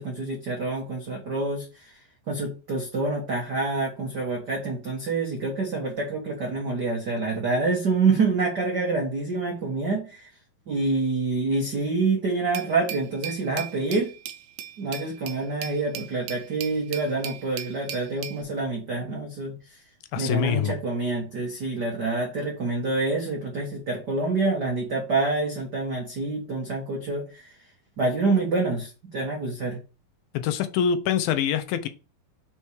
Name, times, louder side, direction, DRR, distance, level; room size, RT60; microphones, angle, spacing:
voice 1, 0.0-1.6 2.3-10.3 10.7-14.1 14.8-19.5 20.1-27.2 28.0-29.8, right 3 dB, 65° right, 1.0 m, -27 dB
Glass, 12.5-18.4, right 10 dB, 85° right, 2.4 m, -38 dB
voice 2, 20.1-20.8 30.3-31.9, left 8 dB, 80° left, 2.4 m, -25 dB
5.5 x 4.5 x 4.7 m
omnidirectional pair, 4.2 m